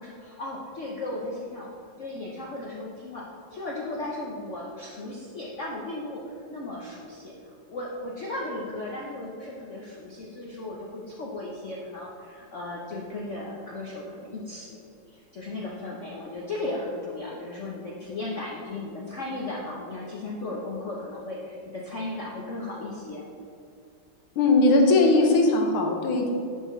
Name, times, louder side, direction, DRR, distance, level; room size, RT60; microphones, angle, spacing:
voice 1, 0.0-1.7 2.0-3.2 3.5-7.3 7.7-14.8 15.1-23.2, left 2 dB, 55° left, -4 dB, 0.8 m, -36 dB
voice 2, 24.4-26.3, left 2 dB, 90° left, 2 dB, 1.8 m, -19 dB
10.5 x 5.6 x 3.2 m, 2.3 s
omnidirectional pair, 2.3 m